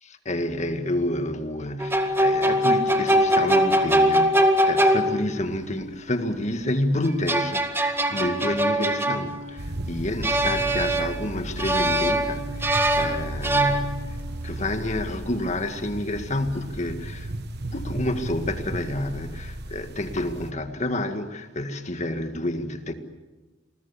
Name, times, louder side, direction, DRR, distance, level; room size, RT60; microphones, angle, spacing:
voice 1, 0.0-17.3 17.7-22.9, left 1 dB, 35° left, 1.9 m, -29 dB
sound 1, 1.8-5.5 7.0-9.7 10.2-11.3 11.6-14.3, right 1 dB, 10° right, 1.9 m, -22 dB
sound 2, 9.6-20.5, right 1 dB, 55° right, 1.3 m, -35 dB
28.5 x 20.5 x 8.3 m
head